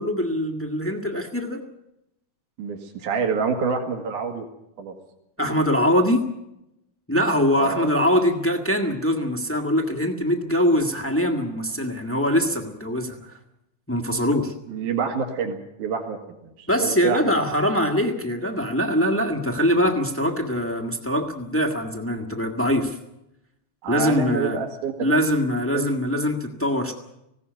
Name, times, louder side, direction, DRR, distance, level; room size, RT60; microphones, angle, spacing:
voice 1, 0.0-1.6 5.4-6.2 7.1-13.3 13.9-14.5 16.7-23.0 23.9-24.6 25.0-26.9, equal, 10° left, 4 dB, 0.8 m, -23 dB
voice 2, 2.6-4.5 4.8-5.0 7.6-7.9 14.7-17.3 23.8-25.1 25.7-25.9, right 6 dB, 75° right, 4 dB, 3.6 m, -27 dB
19.0 x 16.5 x 9.4 m, 0.87 s
omnidirectional pair, 3.6 m